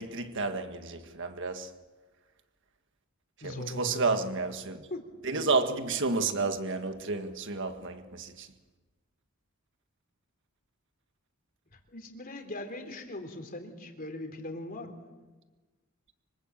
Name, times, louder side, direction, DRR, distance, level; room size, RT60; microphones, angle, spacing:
voice 1, 0.0-1.7 3.4-4.9 5.2-8.5, right 3 dB, 55° right, 1.7 m, -31 dB
voice 2, 3.4-4.2 4.9-5.1 11.9-14.9, left 1 dB, 40° left, 3.5 m, -40 dB
25.5 x 24.0 x 7.4 m
head